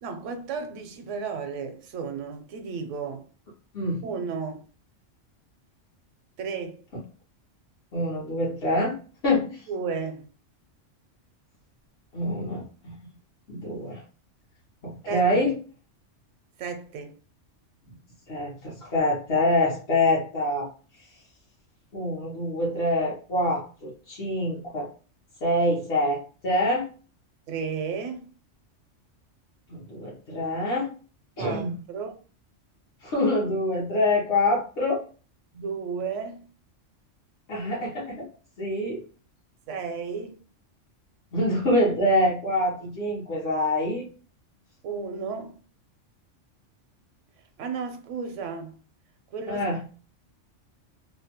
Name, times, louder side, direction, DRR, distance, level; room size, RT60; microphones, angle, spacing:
voice 1, 0.0-3.2 4.0-4.6 6.4-6.8 9.7-10.3 15.1-15.2 16.6-17.1 27.5-28.3 31.4-32.1 35.5-36.5 39.7-40.4 44.8-45.6 47.6-48.7 49.3-49.6, right 5 dB, 80° right, 0.9 m, -33 dB
voice 2, 7.9-9.0 9.2-9.6 12.1-13.0 13.5-14.0 14.8-15.6 17.9-18.0 18.3-20.7 21.9-24.9 25.4-26.9 29.7-30.9 31.4-31.8 33.0-35.0 37.5-38.3 38.6-39.0 41.3-44.0 49.5-49.8, left 1 dB, 60° left, 1.0 m, -25 dB
2.7 x 2.1 x 2.8 m
omnidirectional pair, 1.3 m